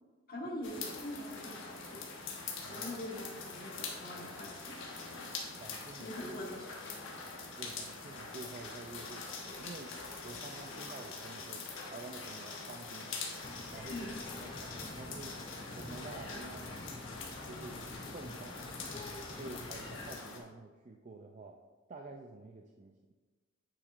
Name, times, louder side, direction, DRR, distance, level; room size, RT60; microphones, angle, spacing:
voice 1, 0.3-2.0 2.7-4.9 5.9-7.2 13.9-14.3, left 1 dB, 45° left, -2 dB, 1.5 m, -44 dB
sound 1, 0.6-20.4, left 4 dB, 75° left, 1.3 m, -44 dB
voice 2, 2.6-3.1 5.6-6.4 7.6-9.9 10.2-13.2 13.7-14.1 14.6-15.4 15.8-17.0 17.5-18.7 19.4-21.6 21.9-23.0, right 3 dB, 35° right, 3 dB, 0.4 m, -49 dB
sound 2, 13.4-20.2, left 2 dB, 25° left, 0.5 m, -48 dB
8.9 x 7.2 x 2.5 m, 1.3 s
head